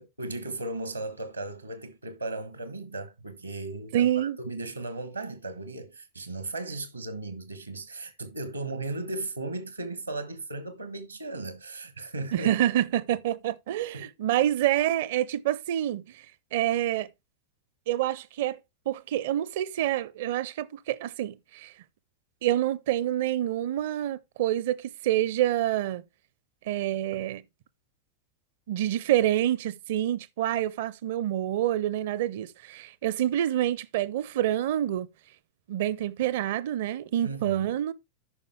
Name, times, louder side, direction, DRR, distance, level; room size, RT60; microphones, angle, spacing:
voice 1, 0.0-12.5 13.9-14.1 37.2-37.7, right 2 dB, 80° right, 1.1 m, -36 dB
voice 2, 3.9-4.4 12.3-16.0 16.5-17.1 17.9-18.6 18.9-21.7 22.4-26.0 26.7-27.4 28.7-35.1 35.7-37.9, right 12 dB, 55° right, 0.5 m, -27 dB
13.5 x 5.3 x 3.2 m
figure-of-eight pair, 90°, 0 cm